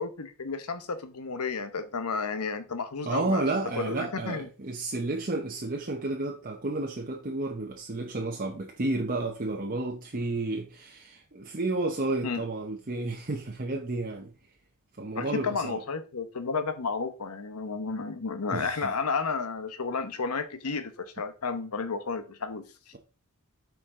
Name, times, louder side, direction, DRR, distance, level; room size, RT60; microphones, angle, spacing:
voice 1, 0.0-3.4 3.8-4.4 12.2-12.4 15.1-22.6, left 4 dB, 75° left, 0.9 m, -32 dB
voice 2, 3.0-14.3 15.0-15.8 18.5-18.9, right 2 dB, 40° right, 0.9 m, -31 dB
8.3 x 4.7 x 3.7 m
head